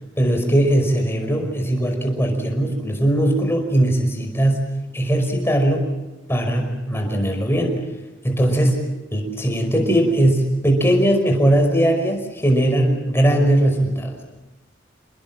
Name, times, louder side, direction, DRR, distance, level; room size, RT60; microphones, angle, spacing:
voice 1, 0.2-5.9 6.3-7.8 8.2-8.8 9.1-14.2, right 1 dB, 15° left, 3 dB, 5.3 m, -19 dB
28.5 x 21.0 x 7.5 m, 1.1 s
head